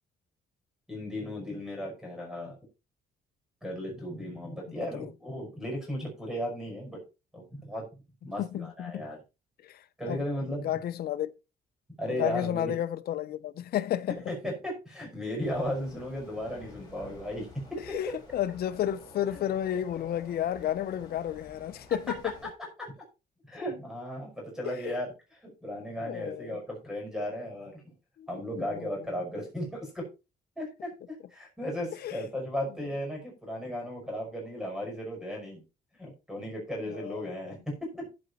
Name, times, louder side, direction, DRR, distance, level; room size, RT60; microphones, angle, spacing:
voice 1, 0.9-2.6 3.6-7.0 7.3-7.8 8.2-9.2 10.0-10.7 12.0-12.7 14.3-17.5 22.8-22.9 23.4-25.1 25.6-27.9 28.3-30.1 30.6-35.6 36.0-38.1, equal, 5° right, 5.4 m, -35 dB
voice 2, 8.4-9.0 9.6-10.2 10.5-11.3 12.1-14.3 17.8-22.3 24.6-25.0 26.0-26.6 28.2-29.1 32.0-32.2 32.9-33.0 36.9-37.6, left 11 dB, 60° left, 0.8 m, -32 dB
sound 1, 15.4-22.5, left 3 dB, 20° left, 5.3 m, -50 dB
15.5 x 5.3 x 4.2 m
cardioid pair, 150°, 18 cm